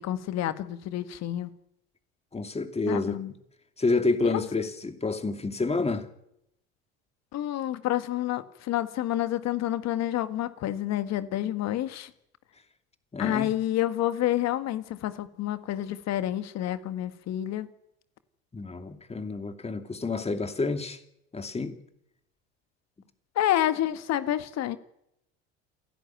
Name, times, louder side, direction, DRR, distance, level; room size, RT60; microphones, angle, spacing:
voice 1, 0.0-1.5 2.9-3.3 4.2-4.4 7.3-12.1 13.2-17.7 23.4-24.8, left 13 dB, 50° left, 1.8 m, -29 dB
voice 2, 2.3-3.2 3.8-6.1 13.1-13.5 18.5-21.0 21.3-21.8, left 3 dB, 20° left, 2.7 m, -29 dB
28.5 x 11.0 x 9.3 m
hypercardioid pair, 75°, 34 cm